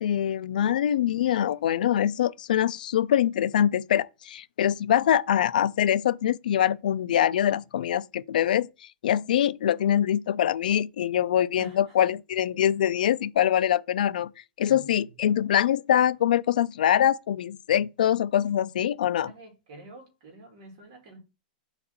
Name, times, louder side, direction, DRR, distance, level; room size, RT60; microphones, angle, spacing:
voice 1, 0.0-8.7 9.0-14.3 14.6-19.3, left 10 dB, 75° left, 0.3 m, -24 dB
voice 2, 11.6-11.9 14.7-15.5 19.2-21.2, right 1 dB, 40° right, 2.5 m, -48 dB
4.6 x 4.0 x 5.7 m
supercardioid pair, 180°, 5 cm